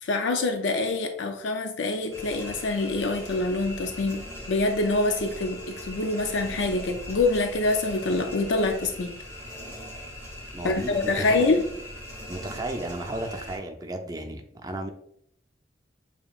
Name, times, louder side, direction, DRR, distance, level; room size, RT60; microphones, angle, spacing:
voice 1, 0.0-9.1 10.6-11.6, left 2 dB, 85° left, 6 dB, 0.4 m, -25 dB
ambient noise (radiator), 2.1-13.6, equal, 15° left, 1.4 m, -40 dB
voice 2, 10.5-11.5 12.3-14.9, right 1 dB, 20° right, 4 dB, 0.5 m, -34 dB
7.0 x 2.9 x 2.3 m, 0.71 s
head